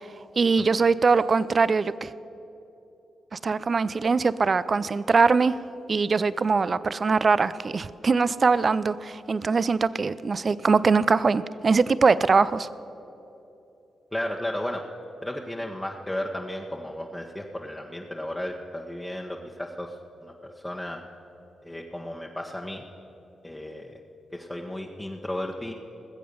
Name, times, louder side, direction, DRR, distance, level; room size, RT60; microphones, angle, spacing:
voice 1, 0.4-2.1 3.3-5.5 5.9-12.7, right 4 dB, 45° right, 16 dB, 0.5 m, -22 dB
voice 2, 14.1-14.8 15.2-19.9 20.2-20.3 20.6-21.0 21.6-22.8 23.4-24.0 24.3-25.7, left 1 dB, 15° left, -1 dB, 1.2 m, -34 dB
19.5 x 7.6 x 6.9 m, 2.9 s
supercardioid pair, 55°, 0 cm